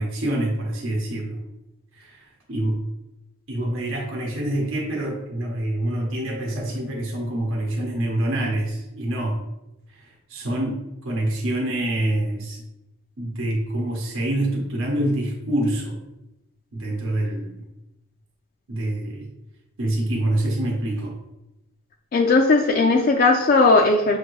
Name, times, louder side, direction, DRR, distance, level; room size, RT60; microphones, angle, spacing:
voice 1, 0.0-1.4 1.9-2.8 3.5-9.4 9.9-12.6 13.2-16.0 16.7-17.7 18.7-19.3 19.8-21.2, right 1 dB, 65° right, -1 dB, 0.9 m, -26 dB
voice 2, 22.1-24.2, left 3 dB, 40° left, 2 dB, 0.3 m, -17 dB
6.5 x 2.6 x 3.1 m, 0.93 s
head